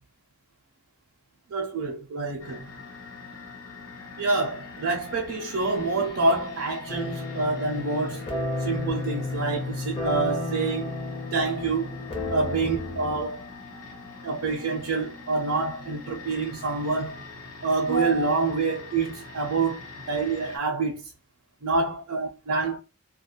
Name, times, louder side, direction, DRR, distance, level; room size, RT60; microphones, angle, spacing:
voice 1, 1.5-2.7 4.2-8.3 8.6-10.9 11.3-12.0 12.3-13.5 14.2-17.2 17.6-19.8 20.1-21.1 21.6-22.8, right 3 dB, 65° right, 0.5 m, -27 dB
sound 1, 2.4-20.6, left 4 dB, 75° left, 0.8 m, -43 dB
sound 2, 6.9-13.2, left 2 dB, 25° left, 0.6 m, -32 dB
2.3 x 2.1 x 2.7 m
head